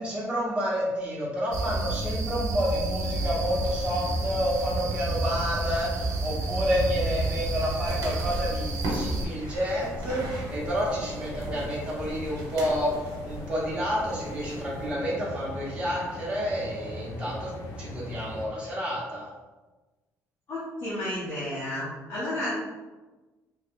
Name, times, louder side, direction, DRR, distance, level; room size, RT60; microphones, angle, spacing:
voice 1, 0.0-17.5 17.8-19.3, equal, 20° right, -6 dB, 1.1 m, -29 dB
sound 1, 1.5-9.2, right 2 dB, 55° right, 0.5 m, -30 dB
sound 2, 3.1-18.5, left 1 dB, 70° left, 0.7 m, -41 dB
sound 3, 7.1-14.9, right 1 dB, 75° right, 1.1 m, -38 dB
voice 2, 20.5-22.5, left 1 dB, 40° left, -9 dB, 0.9 m, -32 dB
3.0 x 2.3 x 3.5 m, 1.2 s
cardioid pair, 145°, 6 cm